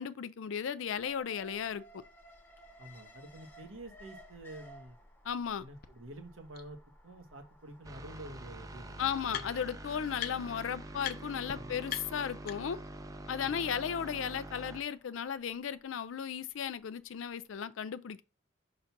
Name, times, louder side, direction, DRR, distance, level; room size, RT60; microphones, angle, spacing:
voice 1, 0.0-2.0 5.2-5.7 9.0-12.8 13.3-18.2, left 7 dB, 75° left, 0.4 m, -35 dB
Alarm, 1.0-17.1 17.4-17.5, equal, 10° left, 0.9 m, -59 dB
voice 2, 2.8-5.0 5.6-9.5 11.5-11.9 13.4-13.8, right 1 dB, 85° right, 1.3 m, -49 dB
sound 1, 5.8-5.9 6.5-6.6 7.9-8.0 8.3-9.8 10.2-10.6 11.0-11.2 11.5-11.6 11.9-12.9, left 10 dB, 50° left, 0.7 m, -42 dB
sound 2, 7.8-14.8, right 1 dB, 15° right, 0.4 m, -46 dB
5.8 x 3.8 x 5.9 m
head